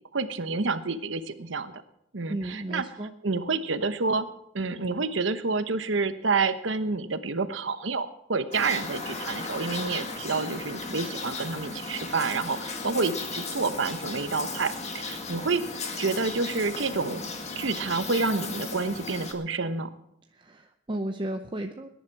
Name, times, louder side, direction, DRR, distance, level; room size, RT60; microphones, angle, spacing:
voice 1, 0.1-1.7 2.1-4.3 4.5-19.9, right 4 dB, 70° right, 11 dB, 1.0 m, -29 dB
voice 2, 2.3-3.1 20.3-21.9, right 1 dB, 25° right, 5 dB, 0.7 m, -34 dB
sound 1, 8.5-19.3, left 3 dB, 35° left, 1.9 m, -36 dB
20.5 x 10.5 x 4.7 m, 0.79 s
head